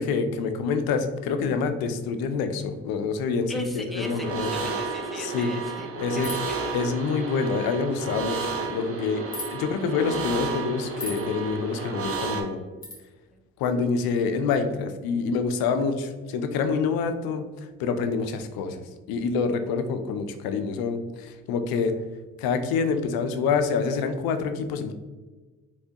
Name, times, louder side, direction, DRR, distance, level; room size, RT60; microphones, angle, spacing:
voice 1, 0.0-3.6 4.0-4.5 5.2-5.5 6.0-6.3 6.7-12.6 13.6-17.5 17.8-21.9 22.4-24.9, left 5 dB, 80° left, 8 dB, 0.5 m, -27 dB
voice 2, 3.5-6.2 6.5-6.6 13.3-13.4, equal, ahead, 2 dB, 0.6 m, -39 dB
sound 1, 4.0-12.4, right 3 dB, 40° right, 0.8 m, -32 dB
sound 2, 6.2-6.6 9.3-9.5 11.0-11.3 12.8-13.0, left 2 dB, 25° left, 1.3 m, -36 dB
3.3 x 3.0 x 2.8 m, 1.3 s
supercardioid pair, 60°, 35 cm